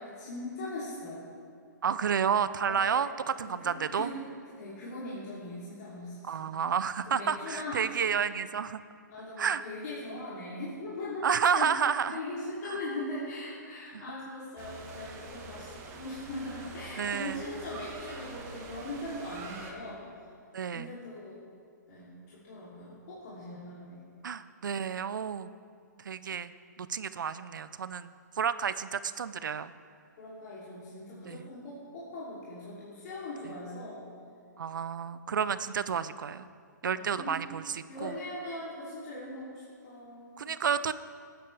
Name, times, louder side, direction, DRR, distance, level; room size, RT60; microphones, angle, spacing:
voice 1, 0.0-1.3 2.7-3.1 3.4-4.2 4.5-6.6 7.1-8.3 9.1-11.7 12.1-20.0 20.7-21.4 21.9-24.0 30.2-34.1 36.9-37.4 37.9-40.5, left 1 dB, 55° left, -8 dB, 2.9 m, -40 dB
voice 2, 1.8-4.1 6.2-8.8 9.4-9.6 11.2-12.2 12.7-12.8 13.9-14.0 17.0-17.4 20.5-21.0 24.2-25.5 26.0-26.5 26.8-29.7 31.2-31.5 34.6-36.5 36.8-38.2 40.4-40.9, right 7 dB, 85° right, 14 dB, 0.5 m, -30 dB
sound 1, 14.6-19.7, right 3 dB, 25° right, 1.2 m, -45 dB
17.0 x 9.1 x 3.4 m, 2.3 s
hypercardioid pair, 145°, 10 cm